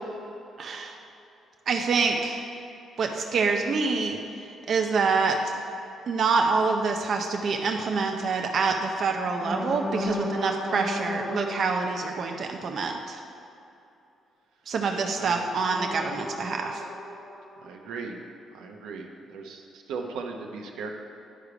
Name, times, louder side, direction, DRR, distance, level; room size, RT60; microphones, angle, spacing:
voice 1, 0.6-0.9 1.7-2.4 3.0-4.2 4.7-5.5 6.1-13.2 14.7-16.8, right 4 dB, 55° right, 2 dB, 0.6 m, -26 dB
sound 1, 6.4-6.5 7.5-7.7 9.3-11.8 15.6-17.7, left 1 dB, 15° left, 1.0 m, -34 dB
voice 2, 15.1-15.5 17.6-18.2 18.5-20.9, right 4 dB, 90° right, 2 dB, 0.8 m, -37 dB
10.0 x 5.0 x 4.9 m, 2.8 s
cardioid pair, 90°, 0 cm